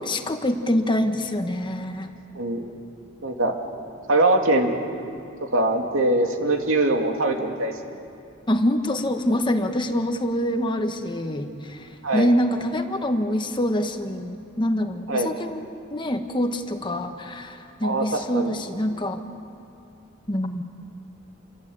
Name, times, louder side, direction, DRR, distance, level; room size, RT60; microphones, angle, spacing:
voice 1, 0.0-2.1 8.5-15.6 15.9-19.2 20.3-20.6, left 1 dB, 25° left, 6 dB, 1.4 m, -25 dB
voice 2, 2.3-2.7 3.2-3.6 4.1-4.7 5.4-7.7 12.0-12.3 15.1-15.4 17.8-18.5, right 2 dB, 75° right, 2 dB, 2.8 m, -22 dB
29.0 x 23.0 x 8.8 m, 2.7 s
head